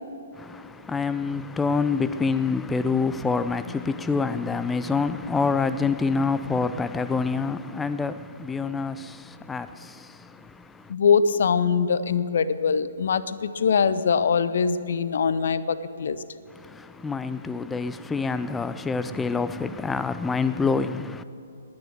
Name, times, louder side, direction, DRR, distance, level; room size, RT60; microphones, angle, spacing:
voice 1, 0.3-10.9 16.5-21.2, left 4 dB, 10° left, 0.4 m, -27 dB
voice 2, 10.9-16.2, left 6 dB, 55° left, 0.6 m, -22 dB
20.0 x 9.6 x 6.4 m
figure-of-eight pair, 125°, 0 cm